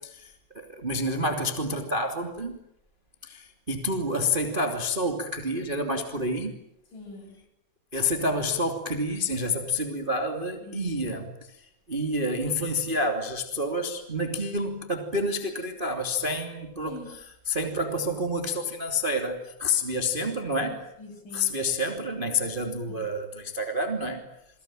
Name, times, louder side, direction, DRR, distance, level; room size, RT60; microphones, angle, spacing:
voice 1, 0.0-2.6 3.2-6.6 7.9-17.0 17.5-20.8 21.3-24.2, left 1 dB, 15° right, 5 dB, 1.8 m, -29 dB
voice 2, 6.9-7.4 10.6-10.8 16.9-17.1 20.2-21.5 22.9-23.0, left 1 dB, 45° left, 4 dB, 9.5 m, -44 dB
29.5 x 22.0 x 9.1 m, 0.80 s
omnidirectional pair, 5.5 m